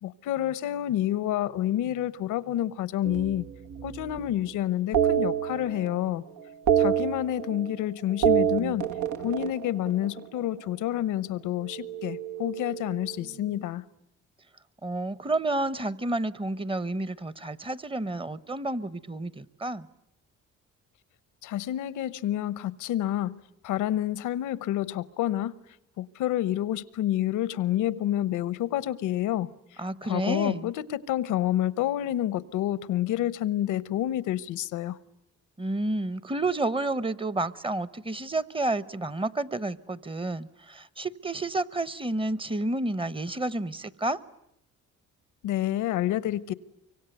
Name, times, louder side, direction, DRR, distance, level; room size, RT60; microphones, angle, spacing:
voice 1, 0.0-3.4 3.8-6.2 6.8-8.9 9.2-13.8 21.4-25.5 26.0-29.5 30.0-35.0 45.4-46.5, left 12 dB, 90° left, 1.0 m, -28 dB
sound 1, 3.0-4.3 4.9-6.1 6.4-7.8 8.1-10.5 11.6-13.4, right 9 dB, 70° right, 1.1 m, -28 dB
voice 2, 14.8-19.9 29.8-30.7 35.6-44.2, right 2 dB, 15° right, 1.0 m, -30 dB
24.5 x 24.0 x 9.3 m
cardioid pair, 90°, 30 cm